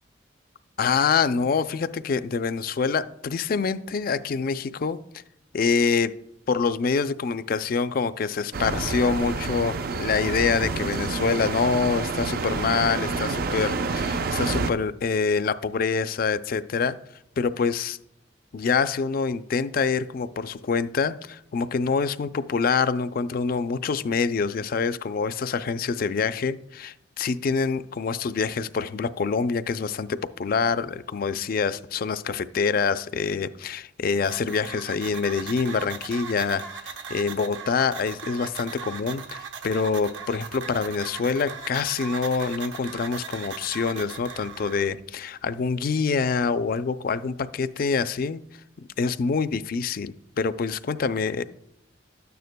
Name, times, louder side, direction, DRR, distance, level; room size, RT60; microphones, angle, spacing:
voice 1, 0.8-5.0 5.5-6.1 6.5-17.0 17.4-18.0 18.5-36.7 37.1-48.4 49.0-51.4, left 5 dB, 50° left, 13 dB, 0.4 m, -26 dB
sound 1, 8.5-14.7, right 4 dB, 50° right, 0.5 m, -28 dB
sound 2, 34.2-44.9, right 6 dB, 75° right, 1.0 m, -39 dB
12.5 x 9.3 x 2.2 m, 0.78 s
head